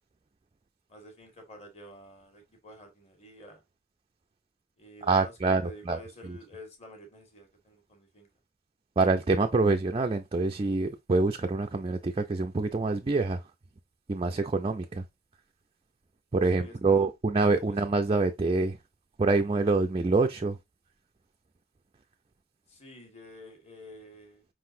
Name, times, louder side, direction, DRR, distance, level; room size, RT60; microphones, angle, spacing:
voice 1, 0.9-3.6 4.8-8.3 16.5-17.1 17.7-17.8 22.7-24.5, left 1 dB, 30° left, 1.5 m, -49 dB
voice 2, 5.1-6.0 9.0-13.4 14.1-15.0 16.3-18.8 19.2-20.6, right 3 dB, 25° right, 0.3 m, -26 dB
5.0 x 3.9 x 2.6 m
head